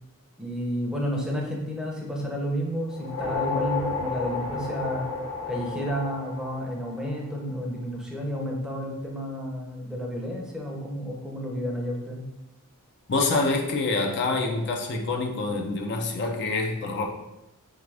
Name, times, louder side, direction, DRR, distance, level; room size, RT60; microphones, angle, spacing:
voice 1, 0.4-5.1 5.5-12.3, equal, 5° right, -2 dB, 0.6 m, -31 dB
sound 1, 2.9-7.4, left 4 dB, 75° left, 0.9 m, -32 dB
voice 2, 13.1-17.0, left 3 dB, 50° left, 2 dB, 0.5 m, -26 dB
3.6 x 3.4 x 3.3 m, 0.92 s
head